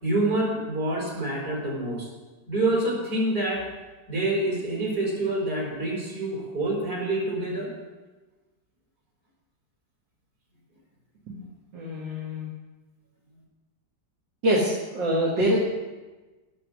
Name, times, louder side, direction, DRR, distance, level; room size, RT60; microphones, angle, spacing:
voice 1, 0.0-2.1 2.5-3.6 4.1-7.7, right 2 dB, 55° right, -3 dB, 4.8 m, -27 dB
voice 2, 11.7-12.5 14.4-15.6, equal, 90° right, -3 dB, 2.6 m, -25 dB
16.5 x 7.1 x 6.3 m, 1.2 s
omnidirectional pair, 1.9 m